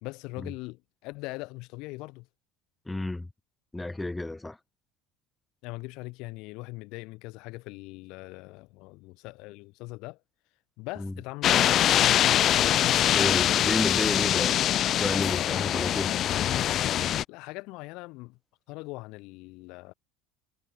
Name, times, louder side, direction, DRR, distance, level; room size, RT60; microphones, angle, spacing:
voice 1, 0.0-2.3 5.6-10.2 10.8-13.6 17.3-18.4 18.7-19.9, left 23 dB, 65° left, 1.6 m, -41 dB
voice 2, 2.9-3.3 3.7-4.6 11.0-11.1 13.1-16.1, left 2 dB, 10° left, 3.3 m, -32 dB
sound 1, 11.4-17.2, left 11 dB, 50° left, 0.5 m, -23 dB
hypercardioid pair, 75°, 0 cm